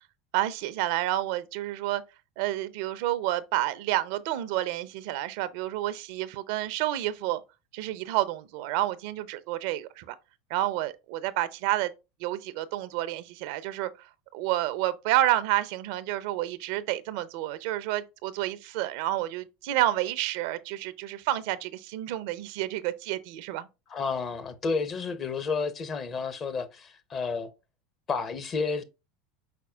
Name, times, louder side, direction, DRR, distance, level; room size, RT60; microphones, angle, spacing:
voice 1, 0.3-2.0 2.4-7.4 7.7-10.2 10.5-11.9 12.2-13.9 14.3-23.7, right 14 dB, 65° right, 0.4 m, -29 dB
voice 2, 23.9-27.5 28.1-28.8, left 4 dB, 35° left, 0.7 m, -31 dB
5.0 x 4.2 x 2.3 m
hypercardioid pair, 85°, 0 cm